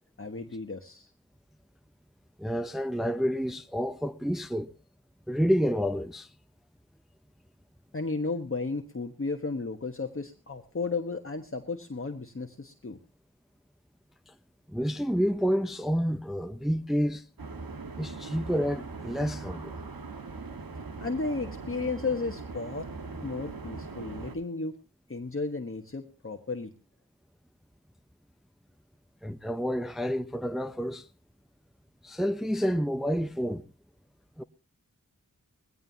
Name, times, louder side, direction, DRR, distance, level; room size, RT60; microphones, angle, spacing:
voice 1, 0.2-1.1 7.9-13.0 21.0-22.9 23.2-24.8 25.1-26.7, left 3 dB, 40° left, 1.3 m, -34 dB
voice 2, 2.4-4.7 5.3-6.3 14.7-17.2 18.0-19.7 29.2-31.1 32.0-33.6 34.4-34.5, equal, ahead, 0.6 m, -29 dB
sound 1, 17.4-24.4, right 4 dB, 85° right, 1.6 m, -40 dB
20.5 x 16.5 x 2.8 m
wide cardioid pair, 75°, 34 cm